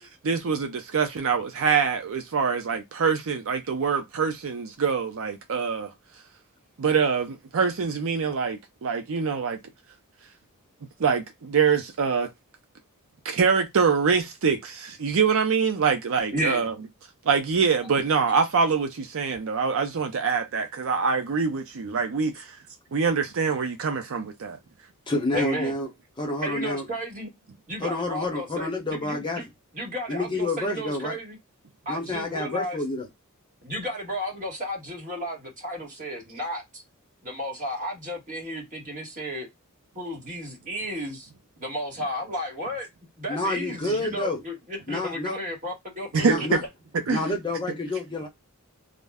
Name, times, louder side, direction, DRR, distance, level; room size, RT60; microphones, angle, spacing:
voice 1, 0.2-5.9 6.8-9.6 11.0-12.3 13.2-16.7 17.3-22.6 22.9-24.6 46.1-46.4 47.1-47.2, right 5 dB, 65° right, 0.5 m, -24 dB
voice 2, 16.3-16.7 25.3-25.7 26.4-27.3 27.7-29.4 29.7-31.4 31.8-32.8 33.6-36.8 37.2-39.5 39.9-41.3 41.6-42.9 43.2-46.1 46.4-46.5, equal, 35° right, 1.4 m, -33 dB
voice 3, 25.1-25.9 26.2-26.9 27.8-29.4 30.1-31.2 31.9-33.1 43.3-44.4 44.9-45.3 46.2-46.6 47.1-48.3, left 2 dB, 20° left, 0.8 m, -28 dB
2.4 x 2.1 x 3.4 m
head